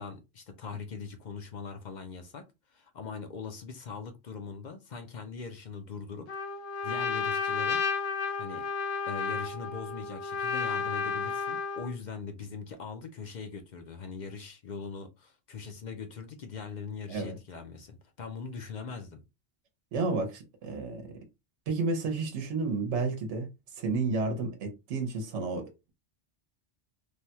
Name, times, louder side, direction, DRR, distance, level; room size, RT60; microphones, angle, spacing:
voice 1, 0.0-2.4 2.7-7.8 8.4-8.7 9.1-19.2, left 5 dB, 55° left, 0.5 m, -41 dB
Trumpet, 6.3-11.9, left 5 dB, 75° left, 0.9 m, -32 dB
voice 2, 19.9-21.2 21.7-23.5 23.7-25.9, right 3 dB, 75° right, 1.1 m, -31 dB
3.3 x 2.2 x 2.8 m
omnidirectional pair, 1.2 m